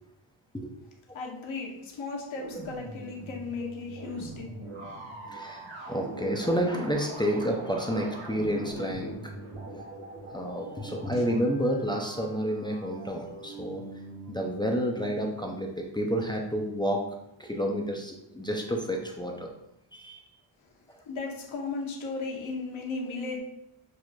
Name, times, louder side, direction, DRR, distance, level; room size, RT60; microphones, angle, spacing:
voice 1, 1.1-4.5 21.1-23.4, left 4 dB, 80° left, 0 dB, 0.9 m, -35 dB
sound 1, 2.3-14.4, right 2 dB, 70° right, 1.0 m, -42 dB
voice 2, 5.3-9.3 10.3-13.8 14.3-17.0 17.4-19.5 19.9-20.3 20.9-21.0, equal, 10° left, 0 dB, 0.4 m, -30 dB
6.1 x 2.4 x 2.3 m, 0.83 s
wide cardioid pair, 95°, 47 cm